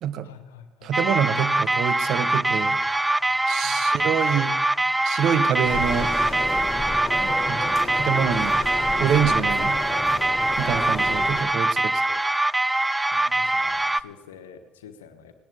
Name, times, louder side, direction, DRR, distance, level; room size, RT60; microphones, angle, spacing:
voice 1, 0.2-0.9 3.2-3.7 11.7-11.9 13.1-15.3, left 7 dB, 80° left, 8 dB, 1.2 m, -47 dB
voice 2, 0.8-2.8 3.5-4.6 5.0-6.2 7.2-8.6 9.0-9.8 10.6-12.2, right 9 dB, 60° right, 14 dB, 0.9 m, -26 dB
sound 1, 0.9-14.0, right 2 dB, 10° right, 0.4 m, -23 dB
Sliding door, 5.2-7.1 8.0-10.2, right 8 dB, 75° right, 1.4 m, -48 dB
sound 2, 5.6-11.4, left 2 dB, 20° left, 4.8 m, -32 dB
18.5 x 18.0 x 3.6 m, 1.2 s
hypercardioid pair, 55°, 0 cm